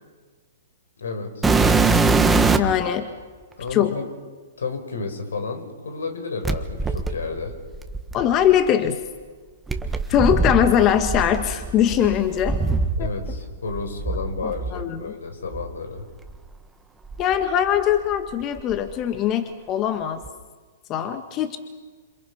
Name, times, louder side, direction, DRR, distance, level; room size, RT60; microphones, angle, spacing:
voice 1, 1.0-1.5 3.5-4.1 4.6-7.5 13.0-16.1, left 4 dB, 80° left, 6 dB, 5.0 m, -31 dB
sound 1, 1.4-2.8 3.7-3.8 6.4-8.5 9.7-13.4 13.7-14.8 15.5-15.7 16.3-16.4 17.0-18.1 18.4-18.9 20.2-20.3, right 3 dB, 10° right, 1.6 m, -23 dB
voice 2, 2.5-3.1 3.7-4.0 8.1-9.0 10.1-12.6 13.0-13.1 14.4-15.1 17.2-20.2 20.9-21.6, left 10 dB, 30° left, 8 dB, 1.6 m, -21 dB
28.0 x 27.0 x 5.8 m, 1.4 s
hypercardioid pair, 130°, 0 cm